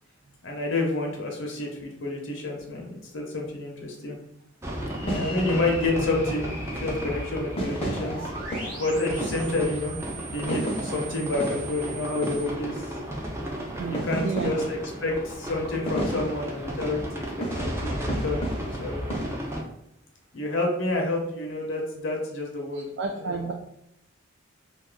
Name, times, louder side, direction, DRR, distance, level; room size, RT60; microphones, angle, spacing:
voice 1, 0.4-4.2 5.0-8.2 8.8-10.0 10.2-12.9 13.9-18.5 18.8-19.0 20.3-22.9 23.2-23.4, left 2 dB, 70° left, 0 dB, 0.7 m, -29 dB
sound 1, 4.6-19.6, right 1 dB, 15° right, 0.5 m, -34 dB
sound 2, 4.8-19.3, equal, 30° left, 0.6 m, -36 dB
sound 3, 6.4-12.5, right 4 dB, 45° right, 0.9 m, -41 dB
voice 2, 13.8-14.5 22.7-23.5, right 4 dB, 75° right, 2 dB, 0.3 m, -31 dB
2.7 x 2.4 x 3.7 m, 0.78 s
head